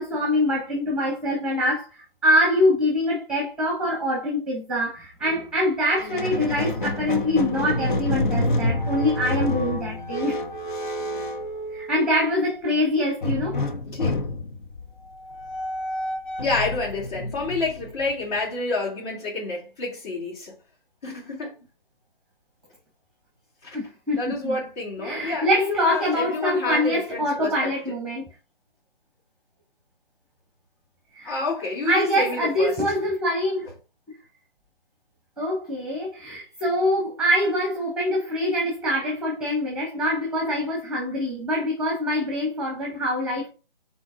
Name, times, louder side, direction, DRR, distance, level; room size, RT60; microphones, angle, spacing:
voice 1, 0.0-10.3 11.7-13.7 23.7-24.6 25.0-28.3 31.1-31.4 31.8-33.7 35.4-43.5, left 1 dB, 5° right, 1.4 m, -24 dB
Squeak, 5.9-12.3 13.2-18.4, left 2 dB, 55° left, 1.4 m, -28 dB
voice 2, 13.9-14.3 16.4-20.5 21.0-21.5 23.6-23.8 24.2-27.9 31.2-32.7, left 3 dB, 40° left, 3.1 m, -29 dB
6.3 x 4.6 x 4.7 m
figure-of-eight pair, 140°, 29 cm